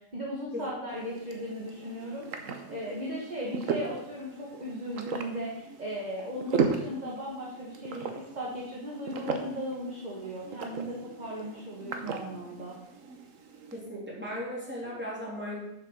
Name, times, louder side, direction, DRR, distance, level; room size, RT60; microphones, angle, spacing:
voice 1, 0.1-2.3 2.7-12.8, equal, 30° right, -4 dB, 1.7 m, -37 dB
sound 1, 0.9-13.8, right 5 dB, 75° right, 1.4 m, -37 dB
voice 2, 13.7-15.6, equal, 10° right, -6 dB, 3.4 m, -36 dB
7.1 x 6.7 x 6.4 m, 0.85 s
omnidirectional pair, 1.4 m